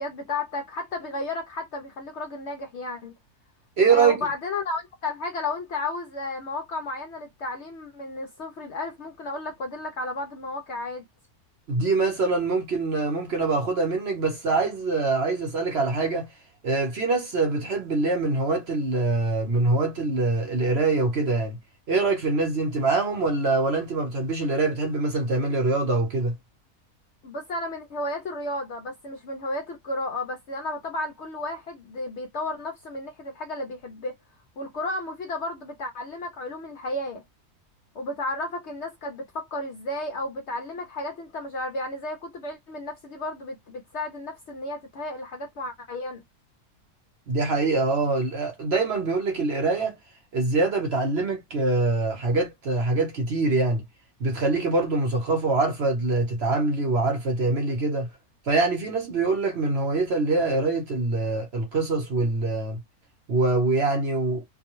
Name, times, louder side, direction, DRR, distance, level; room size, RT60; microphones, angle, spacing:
voice 1, 0.0-3.1 3.9-11.0 27.2-34.1 34.6-37.2 37.9-46.2, left 2 dB, 65° left, 0.7 m, -33 dB
voice 2, 3.8-4.2 11.7-16.3 16.6-21.6 21.9-26.3 47.3-50.0 50.3-53.8 54.2-58.1 58.5-62.8 63.3-64.4, right 3 dB, 50° right, 1.0 m, -24 dB
2.6 x 2.1 x 2.9 m
omnidirectional pair, 1.6 m